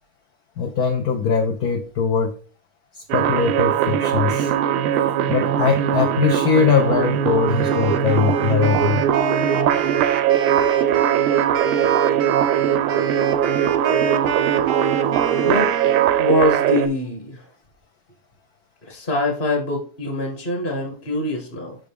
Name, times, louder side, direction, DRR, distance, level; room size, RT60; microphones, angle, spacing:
voice 1, 0.6-2.4 2.9-4.5 5.3-9.0, left 6 dB, 85° left, 0.8 m, -21 dB
sound 1, 3.1-16.9, right 10 dB, 90° right, 1.5 m, -20 dB
Wind instrument woodwind instrument, 7.4-16.2, right 6 dB, 65° right, 0.8 m, -28 dB
voice 2, 15.4-15.7 16.2-17.4 18.8-21.8, left 1 dB, 35° left, 1.0 m, -23 dB
6.0 x 5.0 x 3.4 m
omnidirectional pair, 2.3 m